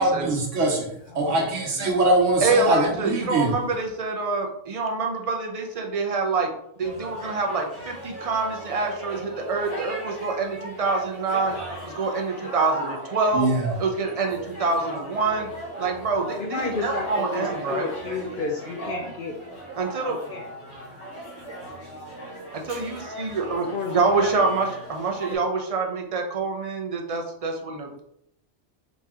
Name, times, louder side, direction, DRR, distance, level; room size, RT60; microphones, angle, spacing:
voice 1, 0.0-3.5 13.3-13.7, right 2 dB, 85° right, 0 dB, 1.3 m, -22 dB
voice 2, 1.1-1.4 1.8-2.2 7.2-7.4 16.4-19.4 20.1-20.5 23.7-24.7, left 4 dB, 60° left, 3 dB, 0.6 m, -32 dB
voice 3, 2.4-6.5 6.8-11.6 11.8-13.5 13.8-15.5 15.8-17.9 19.8-20.2 22.5-28.0, right 3 dB, 40° right, 2 dB, 0.6 m, -26 dB
sound 1, 6.8-25.4, right 1 dB, 75° left, 1.5 m, -37 dB
4.1 x 2.9 x 3.6 m, 0.77 s
omnidirectional pair, 1.2 m